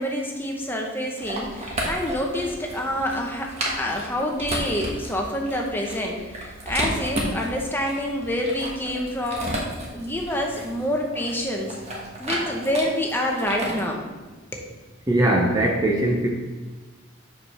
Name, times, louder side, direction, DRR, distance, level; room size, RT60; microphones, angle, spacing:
voice 1, 0.0-9.6 9.9-11.8 12.2-14.0 14.5-14.7, left 1 dB, 10° left, 0 dB, 0.8 m, -27 dB
sound 1, 1.2-13.8, right 1 dB, 35° right, 1.2 m, -33 dB
voice 2, 15.1-16.3, right 1 dB, 20° right, -1 dB, 0.5 m, -20 dB
4.9 x 4.8 x 5.8 m, 1.3 s
head